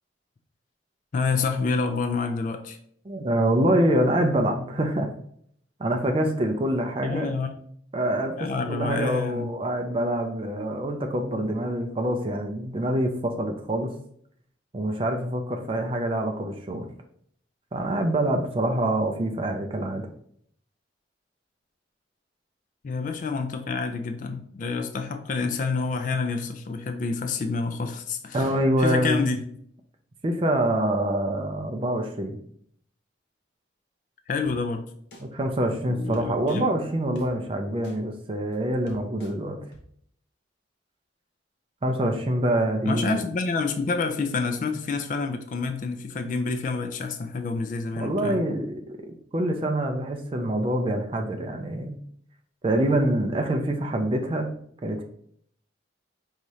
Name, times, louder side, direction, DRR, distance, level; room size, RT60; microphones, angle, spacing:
voice 1, 1.1-2.8 7.0-7.5 8.4-9.5 22.8-28.5 28.8-29.4 34.3-34.8 35.9-36.7 42.8-48.4, left 4 dB, 45° left, 7 dB, 0.3 m, -28 dB
voice 2, 3.1-5.1 5.8-7.3 7.9-13.9 14.7-16.9 17.7-20.1 28.3-29.3 30.2-32.4 35.2-39.6 41.8-43.2 48.0-52.0 52.6-54.5 54.8-55.0, right 1 dB, 30° right, 4 dB, 0.4 m, -25 dB
sound 1, 34.4-34.5 35.1-35.2 36.1-36.6 37.2-37.3 37.8-38.0 38.5-38.6 38.9-39.3 39.7-39.8, left 1 dB, 60° left, 0.8 m, -48 dB
4.8 x 2.7 x 3.0 m, 0.65 s
head